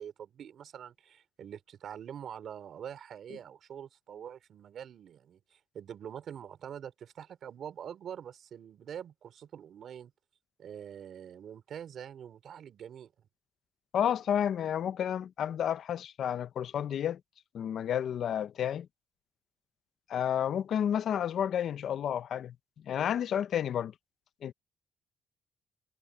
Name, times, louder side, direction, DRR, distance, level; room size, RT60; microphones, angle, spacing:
voice 1, 0.0-10.1 10.6-13.1, right 9 dB, 65° right, 4.1 m, -45 dB
voice 2, 13.9-17.2 17.5-18.9 20.1-22.5 22.9-23.9 24.4-24.5, left 9 dB, 65° left, 0.7 m, -31 dB
cardioid pair, 90°, 0 cm